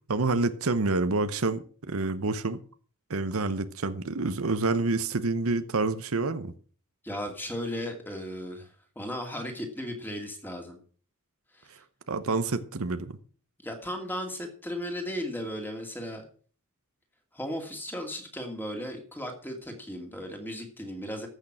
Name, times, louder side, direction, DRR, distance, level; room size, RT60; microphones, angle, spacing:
voice 1, 0.1-2.6 3.1-6.5 12.1-13.2, right 3 dB, 70° right, 12 dB, 0.9 m, -28 dB
voice 2, 7.0-10.8 11.5-11.8 13.6-16.3 17.3-21.3, equal, 10° left, 3 dB, 2.5 m, -36 dB
14.5 x 6.6 x 6.2 m, 0.42 s
head